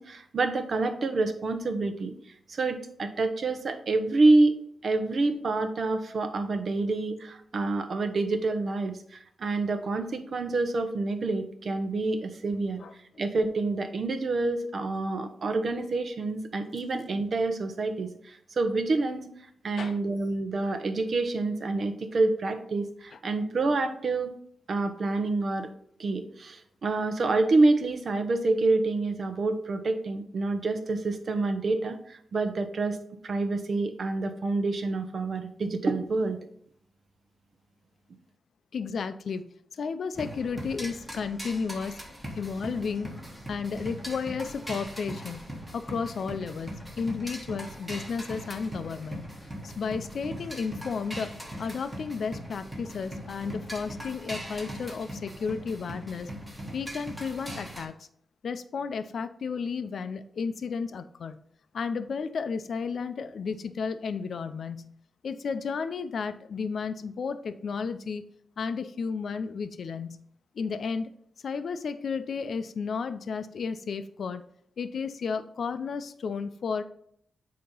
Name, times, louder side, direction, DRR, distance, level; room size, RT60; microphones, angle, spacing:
voice 1, 0.0-2.1 2.5-4.5 4.8-12.8 13.2-19.3 19.6-24.3 24.7-25.7 26.0-33.0 33.2-36.4, right 3 dB, 55° right, 8 dB, 0.8 m, -27 dB
voice 2, 38.7-39.5 39.7-42.0 42.3-43.1 43.5-49.3 49.6-56.3 56.7-58.1 58.4-61.4 61.7-64.9 65.2-68.2 68.6-70.2 70.5-71.1 71.4-74.4 74.8-76.8, left 5 dB, 65° left, 10 dB, 0.5 m, -33 dB
sound 1, 40.1-57.8, equal, 5° right, 1.5 m, -40 dB
8.4 x 2.9 x 5.3 m, 0.67 s
wide cardioid pair, 105°, 0 cm